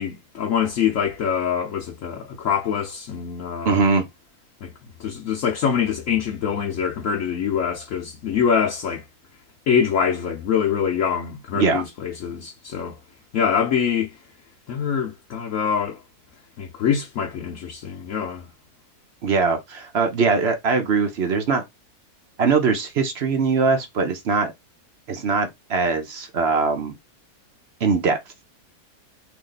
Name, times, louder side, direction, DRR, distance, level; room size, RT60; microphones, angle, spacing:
voice 1, 0.0-3.8 4.6-4.7 5.0-9.0 9.7-13.0 13.3-14.2 14.7-16.0 16.6-18.5, left 7 dB, 65° left, 1.0 m, -24 dB
voice 2, 3.6-4.1 11.5-11.8 19.2-21.6 22.4-24.5 25.1-26.9 27.8-28.2, right 4 dB, 55° right, 0.8 m, -21 dB
3.1 x 2.9 x 3.9 m
omnidirectional pair, 1.6 m